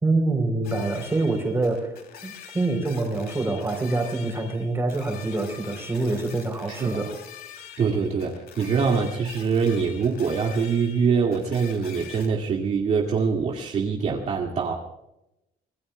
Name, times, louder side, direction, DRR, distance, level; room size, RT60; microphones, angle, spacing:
voice 1, 0.0-7.1, right 2 dB, 15° right, 4 dB, 3.7 m, -26 dB
sound 1, 0.6-12.3, left 8 dB, 75° left, 2.9 m, -44 dB
voice 2, 6.7-7.0 7.8-14.7, right 5 dB, 45° right, -1 dB, 2.1 m, -24 dB
26.0 x 21.5 x 2.3 m, 0.87 s
cardioid pair, 170°, 16 cm